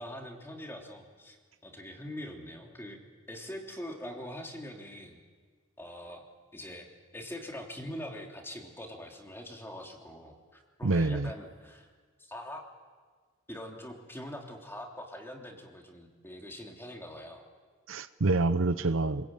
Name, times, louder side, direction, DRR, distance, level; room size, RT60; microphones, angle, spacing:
voice 1, 0.0-1.4 1.6-3.0 3.3-5.2 5.8-6.2 6.5-6.9 7.1-10.4 10.8-11.9 12.2-12.6 13.5-17.4, left 1 dB, 10° left, 1 dB, 3.1 m, -43 dB
voice 2, 10.8-11.3 17.9-19.3, right 3 dB, 65° right, 13 dB, 0.8 m, -27 dB
28.5 x 21.5 x 9.0 m, 1.5 s
head